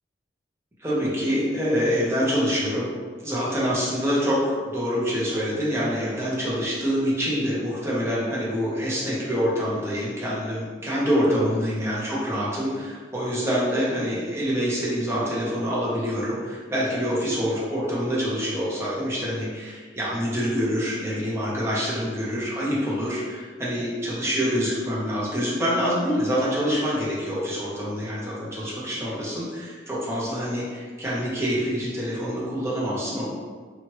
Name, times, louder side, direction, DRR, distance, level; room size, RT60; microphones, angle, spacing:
voice 1, 0.8-2.9 3.2-33.3, equal, 15° right, -7 dB, 0.7 m, -26 dB
2.8 x 2.4 x 3.1 m, 1.5 s
head